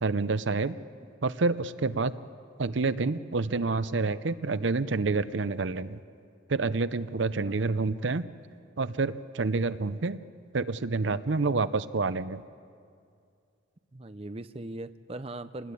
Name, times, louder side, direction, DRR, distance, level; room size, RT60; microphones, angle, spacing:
voice 1, 0.0-0.8 1.2-2.1 2.6-6.0 6.5-8.3 8.8-10.2 10.5-12.4, right 3 dB, 70° right, 14 dB, 0.6 m, -28 dB
voice 2, 13.9-15.7, right 2 dB, 30° right, 11 dB, 0.6 m, -40 dB
27.5 x 20.0 x 8.5 m, 2.3 s
head